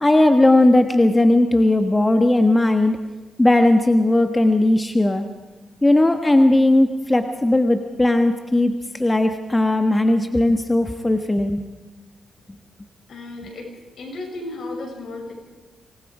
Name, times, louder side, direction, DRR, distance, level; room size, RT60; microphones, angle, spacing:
voice 1, 0.0-3.0 3.4-5.3 5.8-11.6, left 1 dB, 15° left, 6 dB, 1.4 m, -17 dB
voice 2, 13.1-13.7 14.0-15.3, left 2 dB, 70° left, 1 dB, 7.0 m, -33 dB
26.5 x 20.0 x 4.9 m, 1.2 s
cardioid pair, 80°, 0 cm